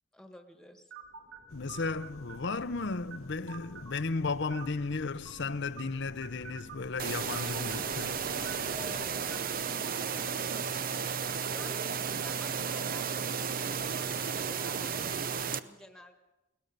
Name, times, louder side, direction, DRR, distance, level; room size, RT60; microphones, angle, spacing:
voice 1, 0.1-0.9 8.7-10.5 11.5-16.2, left 1 dB, 5° left, 1.6 m, -51 dB
sound 1, 0.9-10.4, right 6 dB, 60° right, 3.5 m, -51 dB
sound 2, 1.5-9.2, left 3 dB, 90° left, 0.8 m, -50 dB
voice 2, 1.5-8.2, left 3 dB, 60° left, 0.7 m, -34 dB
sound 3, 7.0-15.6, right 6 dB, 45° right, 0.7 m, -33 dB
21.5 x 19.5 x 6.8 m
head